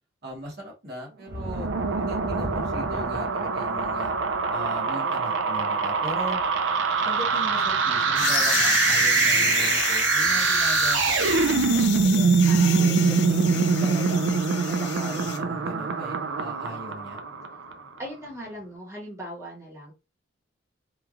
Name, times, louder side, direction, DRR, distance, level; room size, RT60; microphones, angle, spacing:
voice 1, 0.2-4.1 4.5-6.4 7.0-12.4 12.8-14.3 14.6-17.2, equal, 50° right, -2 dB, 1.0 m, -39 dB
sound 1, 1.3-7.2 7.4-8.1 8.6-18.7, left 1 dB, 20° left, 0.7 m, -43 dB
sound 2, 1.4-17.7, right 5 dB, 65° right, 0.3 m, -24 dB
sound 3, 8.2-15.4, left 9 dB, 55° left, 0.4 m, -29 dB
voice 2, 12.4-13.0 18.0-19.9, right 1 dB, 15° right, -3 dB, 1.0 m, -39 dB
3.1 x 2.3 x 2.4 m, 0.28 s
head